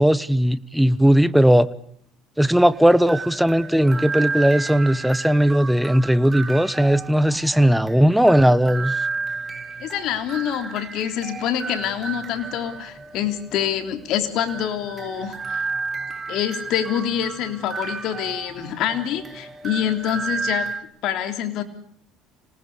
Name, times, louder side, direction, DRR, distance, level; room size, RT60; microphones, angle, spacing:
voice 1, 0.0-1.7 2.4-8.9, equal, ahead, 16 dB, 1.1 m, -17 dB
sound 1, 2.7-20.8, right 4 dB, 20° right, 2.8 m, -32 dB
voice 2, 9.8-15.7 16.3-20.7 21.0-21.6, left 10 dB, 60° left, 8 dB, 3.4 m, -26 dB
26.0 x 19.0 x 8.5 m, 0.63 s
supercardioid pair, 110°, 0 cm